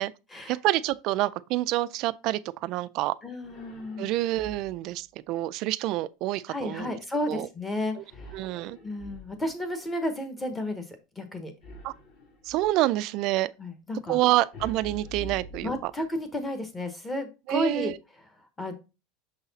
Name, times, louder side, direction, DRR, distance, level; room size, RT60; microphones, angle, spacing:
voice 1, 0.5-3.1 4.0-6.9 7.3-7.5 8.0-8.1 8.3-8.8 11.8-11.9 12.5-13.5 14.1-15.9 17.5-17.9, right 16 dB, 35° right, 0.3 m, -27 dB
voice 2, 3.2-4.1 6.5-8.0 8.8-10.8 11.2-11.5 13.6-14.2 15.6-17.9 18.6-18.7, left 1 dB, 10° left, 0.8 m, -32 dB
sound 1, 3.4-4.9 8.1-9.7 11.6-12.8 14.5-16.2, equal, 35° left, 1.4 m, -45 dB
6.3 x 4.0 x 4.0 m
supercardioid pair, 180°, 0 cm